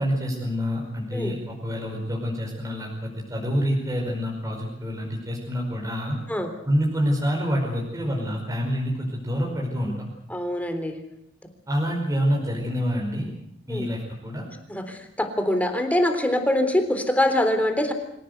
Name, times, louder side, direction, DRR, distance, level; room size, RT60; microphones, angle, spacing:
voice 1, 0.0-6.2 6.6-10.1 11.7-13.3 13.7-14.4, equal, 15° right, -1 dB, 5.1 m, -27 dB
voice 2, 10.3-10.9 13.7-13.9 14.7-17.9, left 1 dB, 10° left, 6 dB, 3.6 m, -24 dB
25.5 x 17.5 x 8.1 m, 0.74 s
head